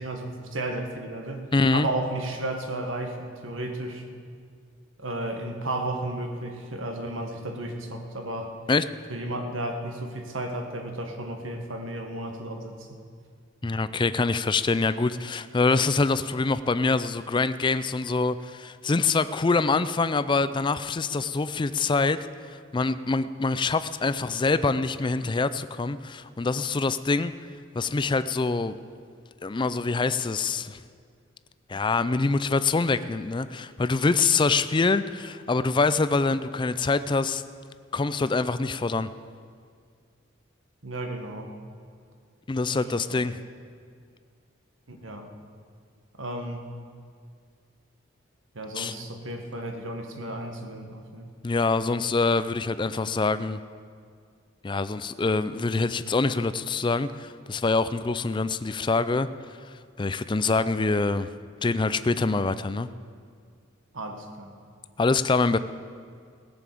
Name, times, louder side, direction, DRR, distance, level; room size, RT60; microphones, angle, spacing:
voice 1, 0.0-4.0 5.0-8.5 9.1-12.9 40.8-41.5 42.7-43.2 44.9-45.3 46.2-46.6 48.5-51.3 63.9-64.6, right 1 dB, 80° right, 4 dB, 1.7 m, -33 dB
voice 2, 1.5-1.9 8.7-8.8 13.6-22.2 22.7-27.3 27.7-28.8 29.4-30.8 31.7-37.4 37.9-39.1 42.5-43.3 48.7-48.9 51.4-53.6 54.6-59.3 60.0-61.3 61.6-62.9 65.0-65.6, left 3 dB, 25° left, 13 dB, 0.4 m, -25 dB
17.5 x 7.1 x 8.5 m, 2.1 s
head